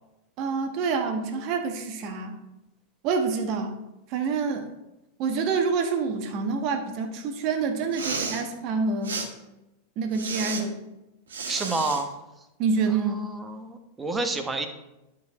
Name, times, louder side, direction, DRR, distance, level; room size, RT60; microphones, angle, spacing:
voice 1, 0.4-2.4 3.0-3.7 4.1-4.7 5.2-9.2 10.0-10.8 12.6-13.2, right 5 dB, 45° right, 5 dB, 1.4 m, -27 dB
Respiratory sounds, 7.8-8.4 9.0-9.3 10.1-10.6 11.3-12.0, right 4 dB, 80° right, 1.6 m, -32 dB
voice 2, 11.5-12.1 12.9-14.7, right 3 dB, 15° right, 5 dB, 1.2 m, -29 dB
11.5 x 4.8 x 4.8 m, 0.96 s
hypercardioid pair, 95°, 0 cm